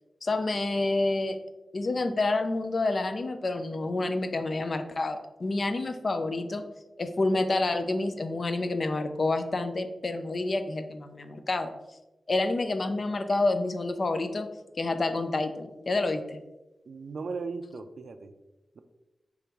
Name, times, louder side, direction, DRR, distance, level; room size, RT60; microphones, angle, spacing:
voice 1, 0.2-1.4 1.7-6.6 7.0-11.7 12.3-14.5 14.8-16.4, left 2 dB, 45° left, 8 dB, 0.4 m, -28 dB
voice 2, 16.9-18.3, right 4 dB, 70° right, 9 dB, 0.3 m, -37 dB
5.1 x 3.5 x 2.9 m, 1.0 s
wide cardioid pair, 145°, 0 cm